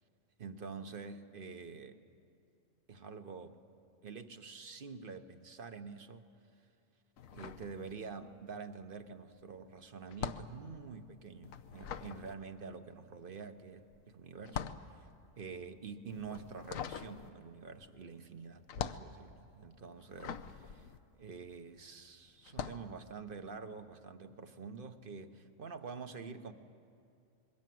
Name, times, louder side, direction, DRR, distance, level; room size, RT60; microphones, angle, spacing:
voice 1, 0.4-2.0 2.9-3.6 4.0-6.3 7.3-15.1 15.4-20.9 21.2-26.5, right 5 dB, 45° right, 9 dB, 1.1 m, -47 dB
sound 1, 7.2-8.4 8.7-21.9 22.4-22.9, left 8 dB, 90° left, 1.2 m, -44 dB
27.0 x 22.0 x 7.7 m, 2.5 s
omnidirectional pair, 1.4 m